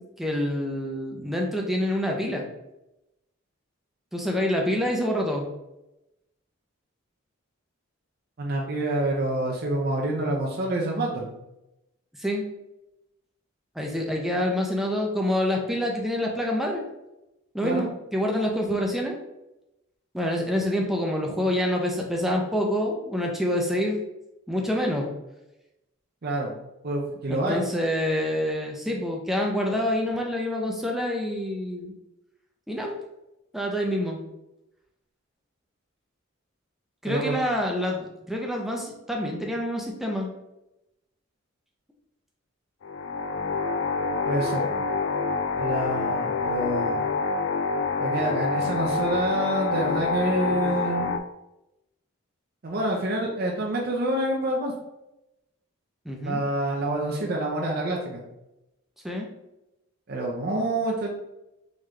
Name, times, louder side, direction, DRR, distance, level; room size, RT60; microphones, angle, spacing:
voice 1, 0.2-2.5 4.1-5.5 12.2-12.4 13.7-16.8 17.5-19.2 20.1-24.0 24.5-25.1 27.3-31.9 32.7-33.0 33.5-34.2 37.0-40.3 56.1-56.4 59.0-59.3, left 1 dB, ahead, 0 dB, 0.5 m, -27 dB
voice 2, 8.4-11.3 17.6-17.8 26.2-26.6 26.8-27.6 37.1-37.4 44.2-44.7 45.6-47.1 48.0-51.1 52.6-54.7 56.2-58.2 60.1-61.1, right 1 dB, 50° right, -1 dB, 0.6 m, -27 dB
sound 1, 42.8-51.2, left 4 dB, 65° left, 0.3 m, -27 dB
3.7 x 3.1 x 3.2 m, 0.91 s
head